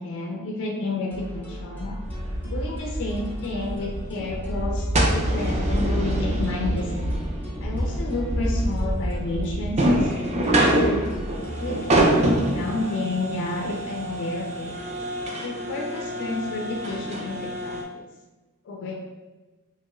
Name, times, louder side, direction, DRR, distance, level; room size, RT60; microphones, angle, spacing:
voice 1, 0.0-2.0 2.4-7.1 7.6-11.1 11.6-14.8 15.4-18.1 18.6-18.9, left 2 dB, 55° left, 0 dB, 0.3 m, -31 dB
sound 1, 1.1-11.8, equal, 10° left, 0.6 m, -36 dB
sound 2, 2.0-17.8, right 1 dB, 30° right, 0.3 m, -26 dB
2.9 x 2.3 x 2.9 m, 1.2 s
head